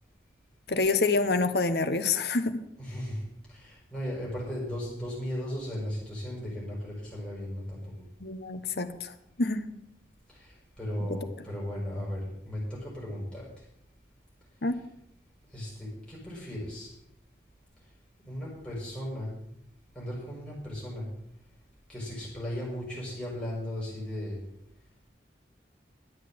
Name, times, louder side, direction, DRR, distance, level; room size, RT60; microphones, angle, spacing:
voice 1, 0.7-2.5 8.2-9.7 14.6-14.8, left 3 dB, 65° left, 9 dB, 1.1 m, -27 dB
voice 2, 2.8-3.2 3.5-8.1 10.3-13.4 15.5-16.9 18.2-19.3 19.9-21.1 21.9-24.4, left 1 dB, 5° left, -6 dB, 6.2 m, -36 dB
11.5 x 8.3 x 7.7 m, 0.79 s
head